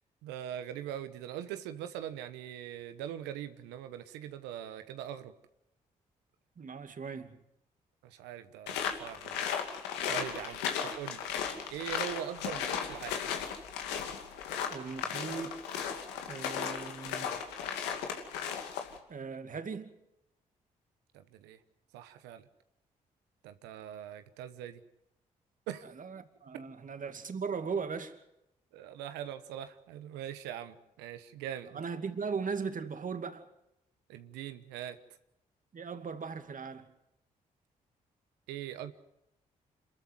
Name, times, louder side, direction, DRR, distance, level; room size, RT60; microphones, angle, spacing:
voice 1, 0.2-5.3 8.0-9.4 10.1-11.2 11.7-13.2 21.1-21.6 21.9-22.4 23.4-24.8 25.7-25.9 28.7-31.8 34.1-35.0 38.5-38.9, right 10 dB, 85° right, 1.1 m, -42 dB
voice 2, 6.6-7.4 14.7-15.6 16.3-17.3 19.1-19.9 25.8-28.2 31.7-33.5 35.7-36.9, right 5 dB, 50° right, 2.5 m, -38 dB
sound 1, 8.7-19.0, left 7 dB, 85° left, 2.5 m, -36 dB
27.5 x 13.5 x 9.5 m
hypercardioid pair, 45°, 17 cm